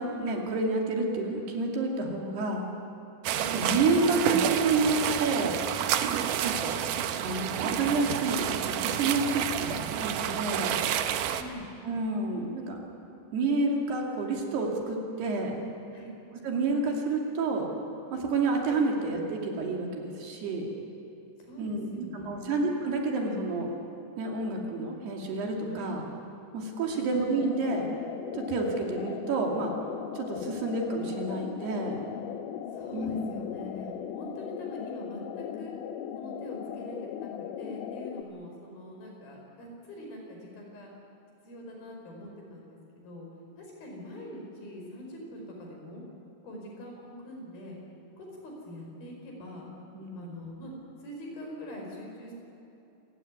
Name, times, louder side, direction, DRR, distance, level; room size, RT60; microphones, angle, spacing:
voice 1, 0.0-2.7 3.5-5.6 6.4-6.8 7.2-10.8 11.9-12.8 13.3-15.5 16.4-17.7 18.1-20.7 21.6-23.7 24.2-26.0 26.5-27.9 28.3-29.7 30.2-32.0 32.9-33.3 49.9-50.3, right 3 dB, 65° right, 0 dB, 4.4 m, -29 dB
sound 1, 3.2-11.4, right 9 dB, 80° right, 1.9 m, -29 dB
voice 2, 3.3-3.6 6.0-6.3 11.3-11.7 15.9-16.2 21.4-22.6 25.7-25.9 26.9-27.1 32.7-35.8 36.2-40.9 41.4-43.3 43.6-46.0 46.4-47.8 48.2-49.7 50.2-50.7 51.0-52.3, equal, 55° left, 0 dB, 6.6 m, -43 dB
sound 2, 27.4-38.2, left 9 dB, 70° left, 2.5 m, -38 dB
27.0 x 15.5 x 9.4 m, 2.8 s
omnidirectional pair, 5.1 m